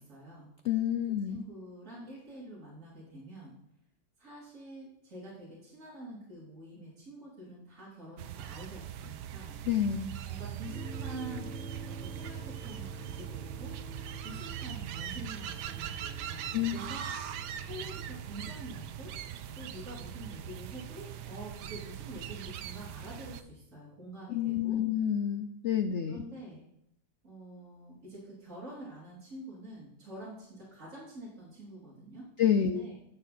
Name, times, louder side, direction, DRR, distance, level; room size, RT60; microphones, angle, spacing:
voice 1, 0.0-0.5 1.3-3.6 4.2-9.6 10.2-11.6 11.8-13.7 14.2-17.0 17.6-19.1 19.5-24.8 26.1-26.6 27.2-32.3 32.6-33.0, right 1 dB, 45° right, -7 dB, 3.2 m, -47 dB
voice 2, 0.6-1.4 9.7-10.1 16.5-16.8 24.3-26.2 32.4-32.8, left 9 dB, 75° left, 9 dB, 0.6 m, -28 dB
sound 1, 8.2-23.4, right 10 dB, 80° right, 1.2 m, -41 dB
sound 2, 10.6-25.2, right 3 dB, 25° left, 1.4 m, -49 dB
12.5 x 6.9 x 4.3 m, 0.77 s
omnidirectional pair, 1.8 m